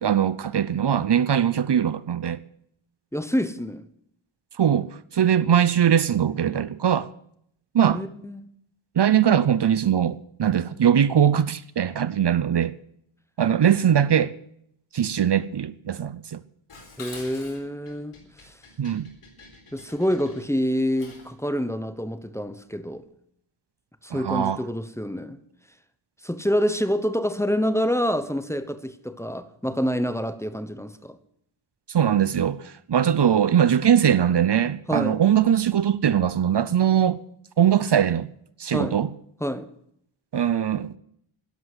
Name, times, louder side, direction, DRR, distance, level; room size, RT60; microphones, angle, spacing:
voice 1, 0.0-2.4 4.6-7.1 7.7-8.0 9.0-12.7 13.4-14.3 14.9-16.4 18.8-19.1 24.1-24.6 31.9-37.2 37.6-38.3 38.6-39.1 40.3-40.9, right 9 dB, 55° right, 0.7 m, -21 dB
voice 2, 3.1-3.8 7.9-8.5 17.0-18.1 18.4-18.6 19.7-23.0 24.0-25.4 26.2-31.2 34.9-35.2 38.7-39.0 39.4-39.7, equal, 5° left, 0.9 m, -27 dB
Dishes pots and pans, 16.7-21.4, left 3 dB, 90° left, 4.2 m, -46 dB
12.0 x 11.0 x 7.9 m
wide cardioid pair, 130°, 49 cm